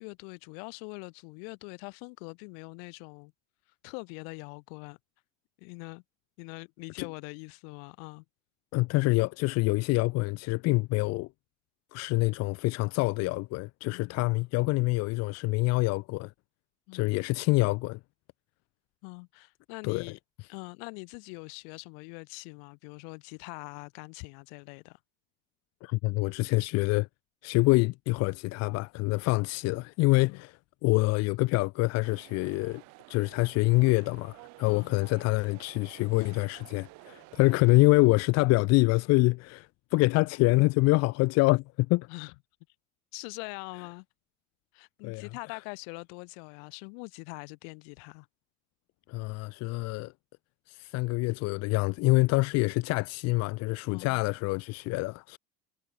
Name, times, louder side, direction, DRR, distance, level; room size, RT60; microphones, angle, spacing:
voice 1, 0.0-3.3 3.8-5.0 5.6-6.0 6.4-8.2 13.8-14.2 16.9-17.2 19.0-20.2 20.5-25.0 30.3-30.4 34.7-35.0 42.1-42.3 43.1-44.1 44.7-48.3 53.9-54.2, left 40 dB or more, 85° left, 3.5 m, -43 dB
voice 2, 8.7-11.3 11.9-16.3 16.9-18.0 19.8-20.0 25.8-27.1 27.4-32.8 33.1-42.1 45.0-45.6 49.1-50.1 50.7-55.4, left 23 dB, 60° left, 0.9 m, -26 dB
sound 1, 32.0-37.9, right 25 dB, 70° right, 6.0 m, -53 dB
cardioid pair, 150°, 29 cm